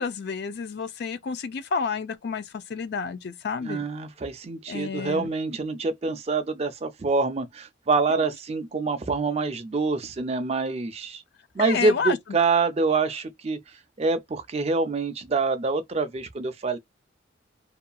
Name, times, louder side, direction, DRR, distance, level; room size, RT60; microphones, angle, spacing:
voice 1, 0.0-3.8 4.7-5.3 8.2-8.3 11.6-12.2, left 5 dB, 55° left, 0.4 m, -30 dB
voice 2, 3.6-11.2 11.5-16.8, right 4 dB, 30° right, 0.4 m, -26 dB
2.8 x 2.4 x 2.2 m
head